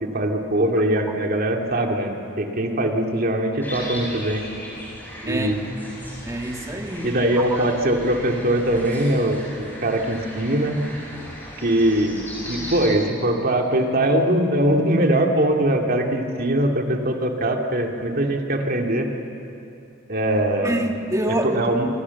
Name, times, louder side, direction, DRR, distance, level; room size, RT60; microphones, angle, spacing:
voice 1, 0.0-4.4 5.2-5.6 7.0-10.8 11.6-19.1 20.1-20.8 21.3-21.9, right 1 dB, 50° right, 2 dB, 2.6 m, -22 dB
sound 1, 3.6-12.9, equal, 10° left, 7.3 m, -37 dB
voice 2, 5.2-5.6 6.2-7.6 20.6-21.8, right 1 dB, 15° right, 3 dB, 2.1 m, -27 dB
27.0 x 25.5 x 7.2 m, 2.7 s
head